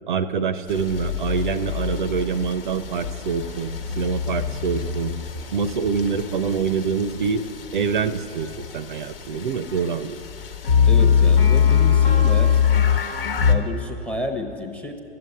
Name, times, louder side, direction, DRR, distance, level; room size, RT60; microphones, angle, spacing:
voice 1, 0.1-5.1 5.5-7.4 7.7-10.2, right 6 dB, 55° right, 13 dB, 0.6 m, -25 dB
sound 1, 0.7-13.6, left 7 dB, 65° left, 1.2 m, -23 dB
voice 2, 10.9-12.6 13.5-15.0, left 2 dB, 5° left, 6 dB, 0.8 m, -30 dB
12.0 x 7.8 x 9.5 m, 2.6 s
figure-of-eight pair, 115°, 31 cm